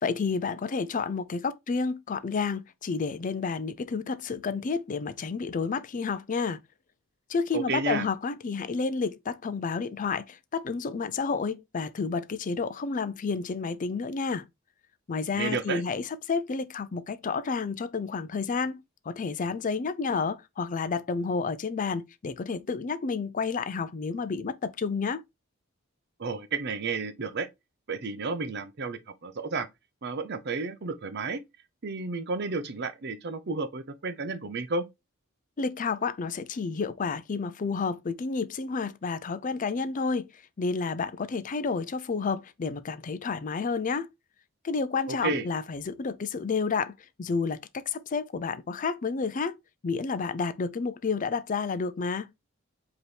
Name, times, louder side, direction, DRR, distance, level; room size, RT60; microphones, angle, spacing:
voice 1, 0.0-6.6 7.3-14.5 15.1-25.2 35.6-44.1 44.6-49.6 49.8-52.3, left 4 dB, 40° left, 0.4 m, -30 dB
voice 2, 7.5-8.1 15.3-15.8 26.2-27.5 27.9-29.7 30.0-31.4 31.8-34.8 45.1-45.5, right 4 dB, 50° right, 0.6 m, -32 dB
5.1 x 3.0 x 3.1 m
head